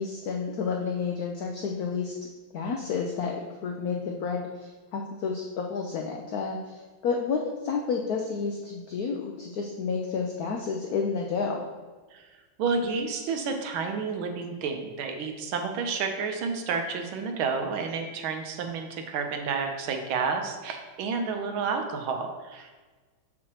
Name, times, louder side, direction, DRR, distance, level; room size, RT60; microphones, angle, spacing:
voice 1, 0.0-2.1 2.5-11.7, left 5 dB, 80° left, 1 dB, 0.8 m, -30 dB
voice 2, 12.6-22.7, right 5 dB, 75° right, 5 dB, 1.5 m, -30 dB
6.4 x 5.9 x 2.9 m, 1.3 s
omnidirectional pair, 2.3 m